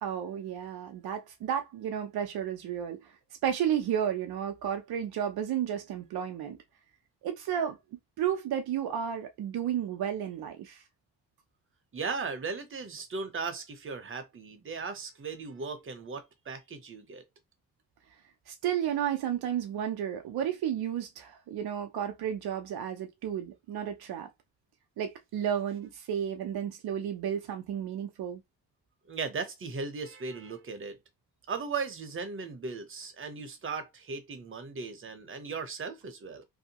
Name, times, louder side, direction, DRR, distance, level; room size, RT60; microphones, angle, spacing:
voice 1, 0.0-3.0 3.4-6.6 7.2-10.8 18.5-24.3 25.0-28.4, right 9 dB, 75° right, 0.6 m, -32 dB
voice 2, 11.9-17.2 29.1-31.0 31.5-36.4, right 4 dB, 35° right, 0.8 m, -37 dB
2.7 x 2.1 x 2.8 m
cardioid pair, 65°, 38 cm